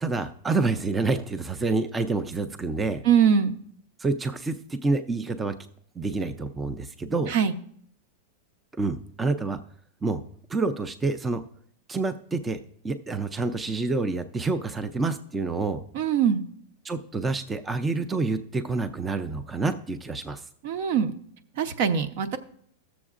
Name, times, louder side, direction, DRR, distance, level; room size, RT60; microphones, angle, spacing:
voice 1, 0.0-3.0 4.0-5.5 6.0-7.3 8.8-9.6 10.0-10.2 10.5-11.4 11.9-12.6 12.8-15.8 16.8-20.4, right 3 dB, 10° right, 10 dB, 0.4 m, -28 dB
voice 2, 3.0-3.5 7.3-7.5 15.9-16.4 20.6-21.1 21.6-22.4, right 7 dB, 60° right, 11 dB, 0.8 m, -22 dB
16.5 x 7.0 x 2.5 m, 0.64 s
supercardioid pair, 145°, 0 cm